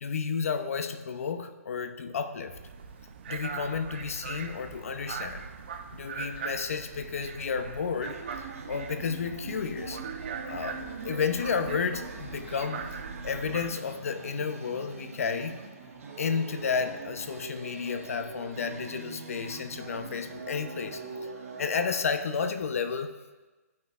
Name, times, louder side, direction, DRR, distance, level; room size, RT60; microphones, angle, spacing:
voice 1, 0.0-2.6 3.3-5.5 5.9-8.2 8.7-10.0 10.5-12.9 13.2-15.6 16.2-21.0 21.6-23.2, left 6 dB, 60° left, 8 dB, 0.7 m, -32 dB
sound 1, 2.5-13.7, right 6 dB, 40° right, 0.5 m, -41 dB
sound 2, 8.0-22.0, right 4 dB, 60° right, 1.2 m, -43 dB
sound 3, 12.3-18.5, right 2 dB, 20° right, 1.7 m, -56 dB
14.0 x 5.8 x 2.5 m, 1.2 s
hypercardioid pair, 160°, 8 cm